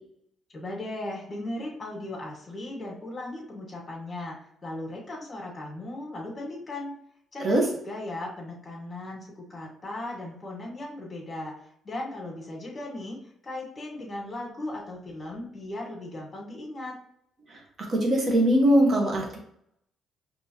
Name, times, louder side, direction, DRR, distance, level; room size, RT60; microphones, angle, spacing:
voice 1, 0.5-4.4 4.6-6.9 7.3-7.6 7.8-11.5 11.8-13.2 13.4-17.0, left 1 dB, 25° left, -3 dB, 1.8 m, -37 dB
voice 2, 17.9-19.4, right 1 dB, 45° right, 1 dB, 1.4 m, -21 dB
5.4 x 3.0 x 3.1 m, 0.72 s
cardioid pair, 90°, 0 cm